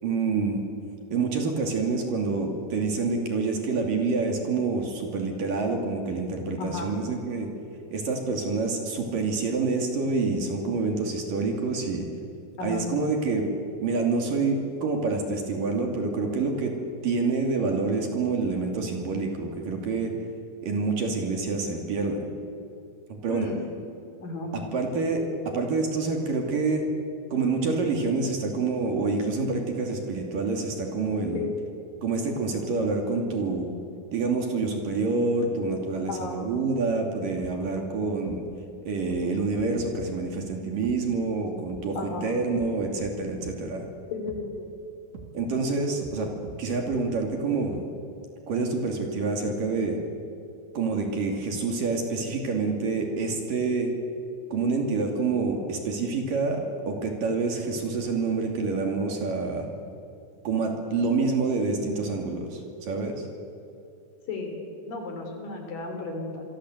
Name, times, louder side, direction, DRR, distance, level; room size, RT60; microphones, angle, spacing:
voice 1, 0.0-0.6 1.1-7.5 7.9-12.1 12.6-13.5 13.8-16.7 17.0-20.1 20.6-22.3 23.2-23.5 24.7-26.9 27.3-31.5 32.0-33.7 34.1-38.4 38.8-43.9 45.3-46.3 46.6-47.8 48.5-50.0 50.7-53.9 54.5-59.7 60.4-63.2, right 4 dB, 55° right, 3 dB, 4.1 m, -27 dB
voice 2, 6.6-6.9 12.6-12.9 23.3-23.6 24.2-24.5 31.3-31.5 36.1-36.4 41.9-42.3 44.1-44.7 64.3-64.5 64.9-66.4, left 3 dB, 55° left, 3 dB, 5.3 m, -34 dB
sound 1, 37.4-37.5 38.2-38.4 39.1-39.2 39.5-40.1 40.8-41.0 41.7-41.8 42.6-42.7 43.0-43.1 43.4-43.6 44.3-44.4 45.1-45.3 46.0-46.2 46.4-46.6 46.9-47.0 47.7-47.8, right 5 dB, 90° right, 4.6 m, -41 dB
27.0 x 23.0 x 8.0 m, 2.6 s
omnidirectional pair, 4.9 m